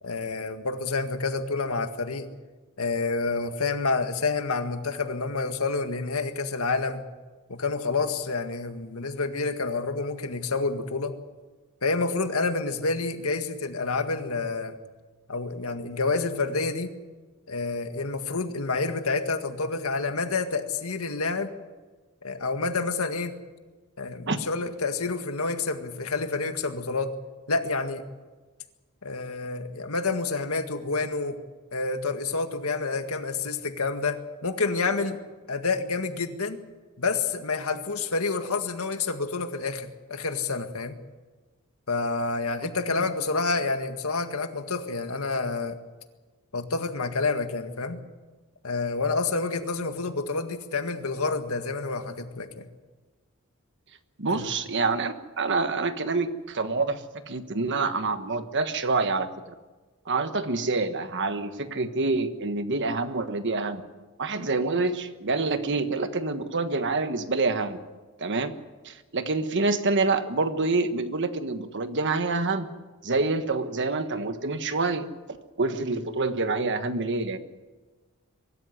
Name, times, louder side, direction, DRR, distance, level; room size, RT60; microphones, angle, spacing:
voice 1, 0.0-2.3 2.8-7.0 7.5-11.1 11.8-14.8 15.3-16.9 17.5-21.5 22.2-23.4 24.0-27.1 27.5-28.0 29.0-31.4 31.7-35.2 35.5-36.6 37.0-41.0 41.9-45.8 46.5-48.0 48.6-52.6 54.3-54.5, left 3 dB, 75° left, 7 dB, 1.9 m, -28 dB
voice 2, 54.2-59.3 60.1-63.8 64.2-67.8 68.2-68.5 68.8-72.7 73.0-75.1 75.6-77.4, right 3 dB, 55° right, 9 dB, 1.4 m, -27 dB
23.5 x 13.0 x 9.8 m, 1.3 s
head